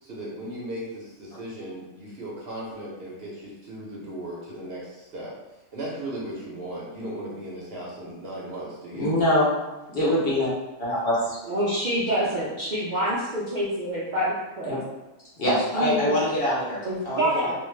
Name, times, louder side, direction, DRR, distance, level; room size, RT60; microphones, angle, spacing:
voice 1, 0.0-5.3 5.7-9.1, right 1 dB, 55° right, -5 dB, 0.8 m, -36 dB
voice 2, 9.0-9.5 9.9-10.5 10.8-11.4 14.7-14.8 15.4-16.8 17.1-17.3, left 1 dB, 50° left, -7 dB, 0.9 m, -23 dB
voice 3, 11.5-14.7 15.7-16.1 16.8-17.5, equal, 80° right, -7 dB, 0.4 m, -26 dB
2.5 x 2.2 x 3.1 m, 1.1 s
omnidirectional pair, 1.4 m